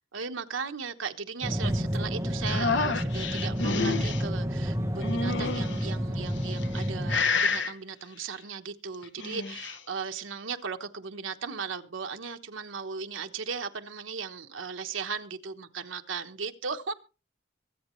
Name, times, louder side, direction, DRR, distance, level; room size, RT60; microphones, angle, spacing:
voice 1, 0.1-16.9, right 5 dB, 85° right, 6 dB, 1.1 m, -37 dB
sound 1, 1.4-7.2, equal, 15° right, 1.2 m, -30 dB
sound 2, 2.5-4.2 5.0-5.9 6.5-6.8 7.1-7.7 9.0-9.8, left 4 dB, 65° left, 1.0 m, -29 dB
24.0 x 8.4 x 3.1 m, 0.34 s
head